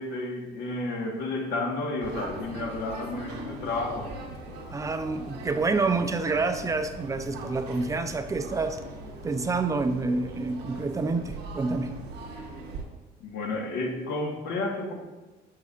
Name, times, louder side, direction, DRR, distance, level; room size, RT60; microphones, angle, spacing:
voice 1, 0.0-4.1 13.2-14.9, left 2 dB, 75° left, 0 dB, 1.3 m, -31 dB
sound 1, 2.0-12.8, right 2 dB, 85° right, 1.2 m, -41 dB
voice 2, 4.7-8.8 9.2-11.9, right 3 dB, 20° right, 7 dB, 0.5 m, -28 dB
6.7 x 6.2 x 2.4 m, 1.2 s
cardioid pair, 110°, 17 cm